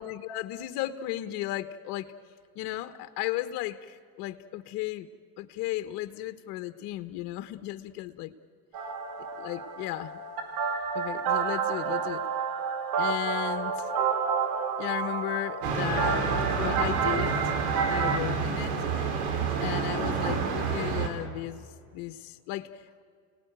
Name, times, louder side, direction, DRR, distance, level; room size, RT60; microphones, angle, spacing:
voice 1, 0.0-2.1 2.5-5.1 5.4-8.3 9.4-10.2 10.9-12.2 13.0-13.9 14.8-16.3 16.6-17.4 17.9-18.7 19.6-23.0, left 15 dB, 70° left, 9 dB, 1.4 m, -35 dB
sound 1, 8.7-18.2, right 6 dB, 55° right, 2.8 m, -30 dB
sound 2, 15.6-21.1, right 5 dB, 80° right, 4.1 m, -29 dB
29.5 x 18.5 x 9.2 m, 2.3 s
supercardioid pair, 90°, 43 cm